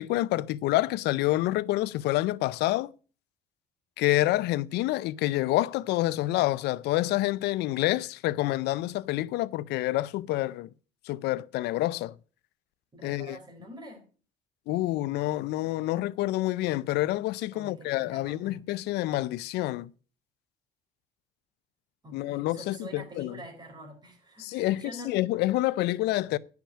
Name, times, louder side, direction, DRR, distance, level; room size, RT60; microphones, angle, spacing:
voice 1, 0.0-2.9 4.0-10.7 11.1-12.1 13.0-13.4 14.7-19.9 22.1-23.4 24.4-26.4, left 16 dB, 85° left, 0.5 m, -28 dB
voice 2, 12.9-14.0 17.5-18.6 22.0-25.2, right 1 dB, 25° right, 4.7 m, -46 dB
10.0 x 5.9 x 7.2 m
cardioid pair, 110°, 17 cm